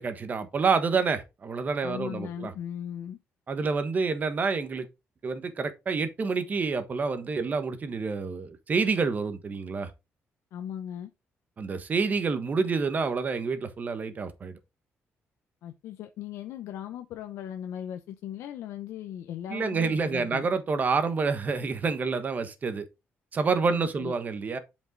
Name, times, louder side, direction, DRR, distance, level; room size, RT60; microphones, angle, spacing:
voice 1, 0.0-2.5 3.5-4.9 5.2-9.9 11.6-14.6 19.5-22.9 23.3-24.6, right 4 dB, 35° right, 1.2 m, -28 dB
voice 2, 1.8-3.2 10.5-11.1 15.6-20.5 23.7-24.1, left 10 dB, 85° left, 0.7 m, -38 dB
8.0 x 5.3 x 3.8 m
cardioid pair, 120°, 5 cm